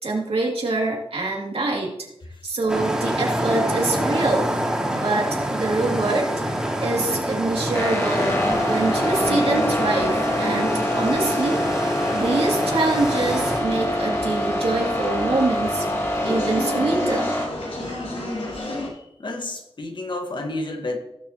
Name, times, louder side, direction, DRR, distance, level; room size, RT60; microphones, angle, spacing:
voice 1, 0.0-1.9 2.4-4.5 4.9-6.3 6.8-8.4 8.6-11.6 12.1-15.8 16.2-17.3, right 3 dB, 75° right, -2 dB, 2.9 m, -25 dB
sound 1, 2.7-13.6, right 1 dB, 5° right, 3.1 m, -26 dB
sound 2, 7.7-17.5, equal, 30° left, 2.5 m, -25 dB
sound 3, 8.2-18.9, left 2 dB, 80° left, 3.7 m, -30 dB
voice 2, 18.4-21.0, left 2 dB, 55° left, 4 dB, 1.7 m, -31 dB
18.0 x 7.2 x 3.1 m, 0.83 s
wide cardioid pair, 85°, 10 cm